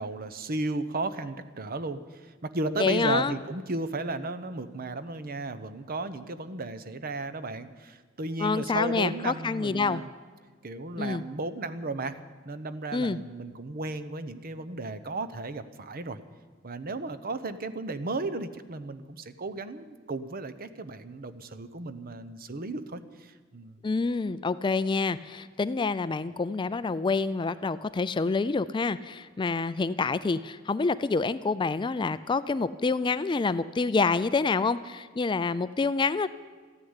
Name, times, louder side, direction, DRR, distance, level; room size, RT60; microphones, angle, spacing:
voice 1, 0.0-10.1 10.6-12.2 12.4-16.2 16.6-23.8, right 2 dB, 50° right, 12 dB, 0.8 m, -34 dB
voice 2, 2.8-3.3 8.4-10.0 11.0-11.2 12.9-13.2 23.8-36.3, left 4 dB, 25° left, 15 dB, 0.4 m, -27 dB
14.0 x 9.9 x 9.7 m, 1.5 s
head